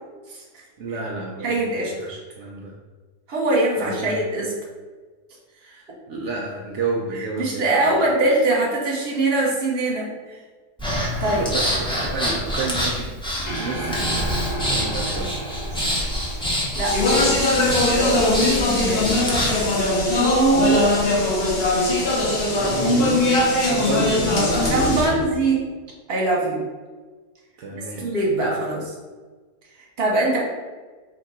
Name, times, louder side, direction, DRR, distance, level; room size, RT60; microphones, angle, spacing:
voice 1, 0.8-2.8 3.8-4.2 5.6-8.0 11.4-15.6 23.2-25.2 27.6-28.2, right 3 dB, 70° right, -1 dB, 0.7 m, -31 dB
voice 2, 1.4-1.9 3.3-4.5 7.1-10.1 11.2-11.5 15.7-16.4 16.7-16.9 17.2-19.3 20.0-20.8 24.7-25.6 26.1-26.6 27.7-28.9 30.0-30.4, right 2 dB, 45° right, -3 dB, 1.1 m, -23 dB
Breathing, 10.8-19.6, equal, 10° left, 0.3 m, -26 dB
sound 1, 13.5-17.9, right 1 dB, 80° left, 1.5 m, -32 dB
Speech, 16.8-25.0, left 2 dB, 50° left, 0.7 m, -20 dB
3.6 x 2.9 x 4.1 m, 1.4 s
omnidirectional pair, 1.7 m